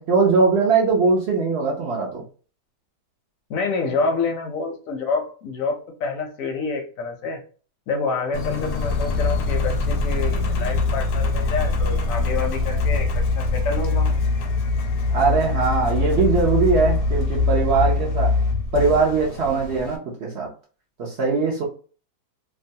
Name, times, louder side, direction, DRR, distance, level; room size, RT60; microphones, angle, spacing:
voice 1, 0.0-2.2 15.1-18.4 18.7-20.5 21.0-21.6, right 4 dB, 70° right, 0.6 m, -20 dB
voice 2, 3.5-7.4 7.9-13.1 13.4-14.2, left 4 dB, 65° left, 0.8 m, -27 dB
Engine, 8.3-20.0, left 3 dB, 90° left, 1.3 m, -23 dB
2.9 x 2.2 x 2.7 m
omnidirectional pair, 1.9 m